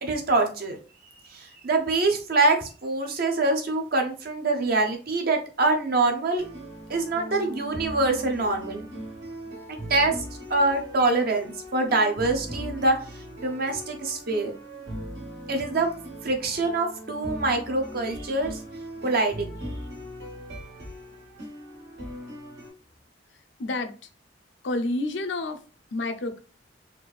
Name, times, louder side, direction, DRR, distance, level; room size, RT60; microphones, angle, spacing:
voice 1, 0.0-0.8 1.3-6.5 6.9-8.8 9.7-10.2 10.5-12.9 13.4-14.5 15.5-15.9 16.2-18.6 19.0-19.5, right 2 dB, 55° right, 4 dB, 0.9 m, -24 dB
sound 1, 6.4-22.7, equal, 85° right, 2.0 m, -39 dB
voice 2, 23.6-23.9 24.6-25.6 25.9-26.4, left 2 dB, 75° left, 7 dB, 0.6 m, -29 dB
4.2 x 2.6 x 3.3 m, 0.37 s
head